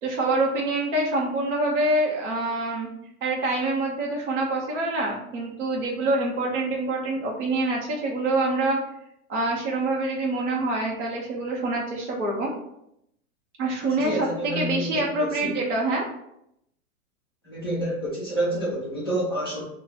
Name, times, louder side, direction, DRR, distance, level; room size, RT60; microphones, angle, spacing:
voice 1, 0.0-2.9 3.2-8.8 9.3-12.5 13.6-16.0, right 2 dB, 55° right, -3 dB, 1.0 m, -26 dB
voice 2, 13.8-15.5 17.4-19.6, right 1 dB, 20° left, -7 dB, 0.3 m, -29 dB
3.0 x 2.3 x 4.1 m, 0.78 s
hypercardioid pair, 170°, 44 cm